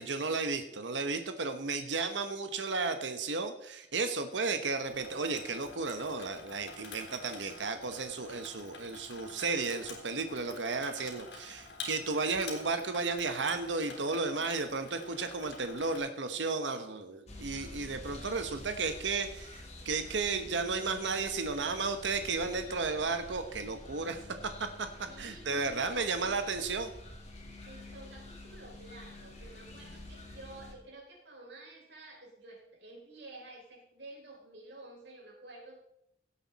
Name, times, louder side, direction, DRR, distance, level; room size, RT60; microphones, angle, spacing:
voice 1, 0.0-26.9, right 4 dB, 90° right, 8 dB, 1.1 m, -34 dB
Water tap faucet / Sink (filling or washing), 4.8-16.0, left 3 dB, 75° left, 3.6 m, -48 dB
sound 1, 17.3-30.7, left 1 dB, 40° left, 2.7 m, -48 dB
voice 2, 25.0-26.4 27.6-35.8, right 2 dB, 70° right, -2 dB, 5.1 m, -51 dB
16.5 x 8.7 x 4.1 m, 0.78 s
head